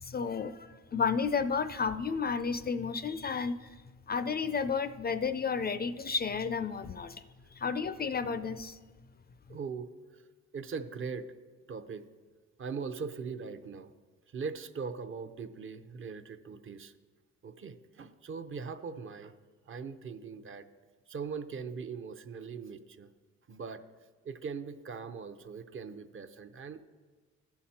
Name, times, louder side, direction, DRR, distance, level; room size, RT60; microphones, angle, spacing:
voice 1, 0.0-3.7 4.1-7.2 7.6-8.8, left 5 dB, 30° left, 12 dB, 0.4 m, -32 dB
voice 2, 9.5-10.3 10.5-11.3 11.7-12.0 12.6-13.9 14.3-16.9 17.4-19.3 19.7-20.7 21.1-23.1 23.5-23.8 24.2-26.8, right 5 dB, 45° right, 10 dB, 0.7 m, -40 dB
15.0 x 5.8 x 4.3 m, 1.4 s
cardioid pair, 90°, 30 cm